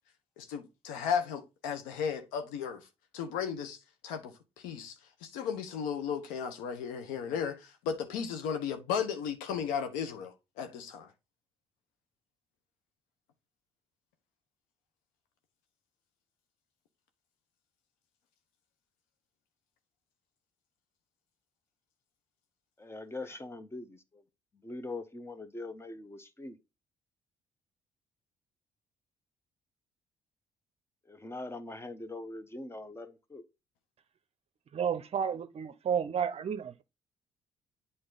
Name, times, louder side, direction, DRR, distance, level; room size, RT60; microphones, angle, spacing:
voice 1, 0.4-2.8 3.1-3.8 4.0-4.3 4.6-4.9 5.2-11.1 23.3-23.4, left 7 dB, 85° left, 1.0 m, -35 dB
voice 2, 22.8-24.0 24.6-26.6 31.1-33.4, left 2 dB, 20° left, 1.0 m, -42 dB
voice 3, 34.7-36.8, right 7 dB, 50° right, 0.6 m, -31 dB
7.8 x 3.9 x 3.9 m
supercardioid pair, 65°, 14 cm